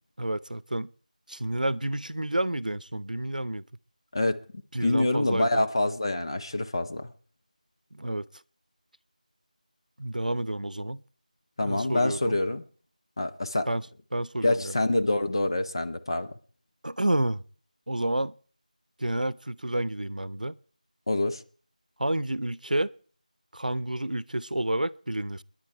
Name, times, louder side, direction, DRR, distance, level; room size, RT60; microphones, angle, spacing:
voice 1, 0.2-0.9 1.3-3.6 4.7-5.6 7.9-8.2 10.0-11.0 11.6-12.4 13.7-13.8 14.1-14.7 16.8-17.4 17.9-18.3 19.0-20.6 22.0-22.9 23.5-25.4, right 1 dB, 80° right, 0.7 m, -29 dB
voice 2, 4.1-7.1 11.6-12.6 13.2-13.7 14.4-16.3 21.1-21.4, left 2 dB, 35° left, 0.9 m, -26 dB
29.5 x 10.5 x 4.6 m
figure-of-eight pair, 170°, 4 cm